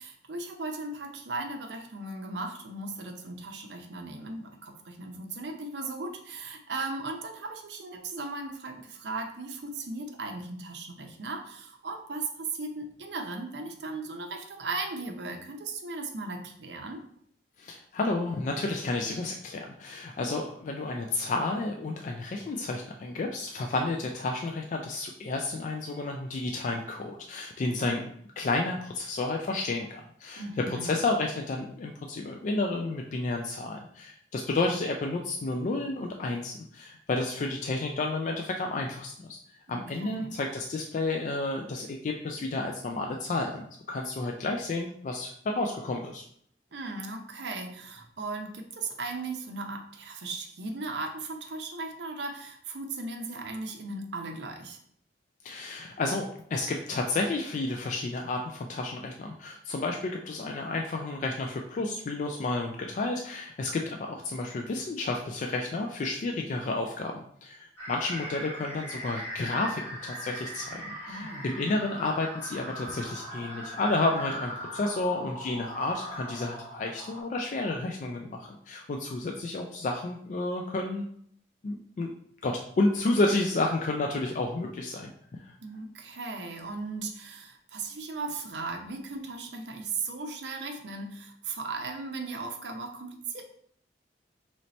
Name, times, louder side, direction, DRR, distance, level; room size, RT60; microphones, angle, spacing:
voice 1, 0.0-17.0 30.4-31.0 39.7-40.3 46.7-54.8 71.1-71.5 85.6-93.4, right 3 dB, 75° right, 4 dB, 0.6 m, -37 dB
voice 2, 17.6-39.4 39.7-46.2 55.4-81.0 81.6-82.1 82.4-85.5, left 2 dB, 45° left, 2 dB, 0.3 m, -31 dB
sound 1, 67.8-77.2, equal, 15° left, 1.2 m, -40 dB
3.1 x 2.7 x 4.1 m, 0.65 s
head